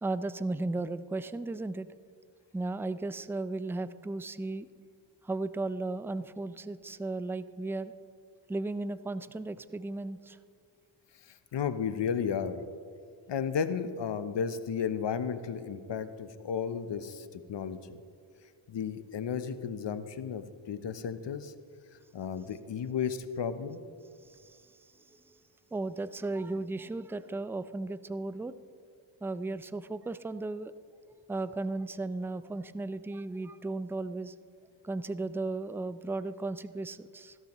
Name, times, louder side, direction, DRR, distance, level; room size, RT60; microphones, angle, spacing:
voice 1, 0.0-1.9 2.5-4.7 5.2-7.9 8.5-10.4 24.3-24.6 25.1-25.4 25.7-28.5 29.2-30.7 31.3-34.3 34.8-37.4, right 2 dB, 5° right, 14 dB, 0.4 m, -35 dB
voice 2, 11.5-12.6 13.3-18.0 18.7-21.5 22.1-23.8, left 7 dB, 60° left, 11 dB, 0.9 m, -33 dB
15.0 x 12.5 x 3.1 m, 2.3 s
cardioid pair, 50°, 49 cm